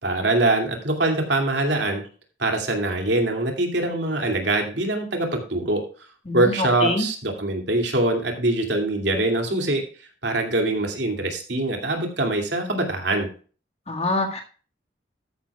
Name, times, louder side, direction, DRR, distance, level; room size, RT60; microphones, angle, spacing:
voice 1, 0.0-2.0 2.4-5.8 6.3-9.8 10.2-13.3, right 2 dB, 70° right, 3 dB, 2.5 m, -23 dB
voice 2, 13.9-14.4, left 2 dB, 35° left, 2 dB, 1.8 m, -24 dB
13.5 x 10.0 x 2.4 m, 0.38 s
head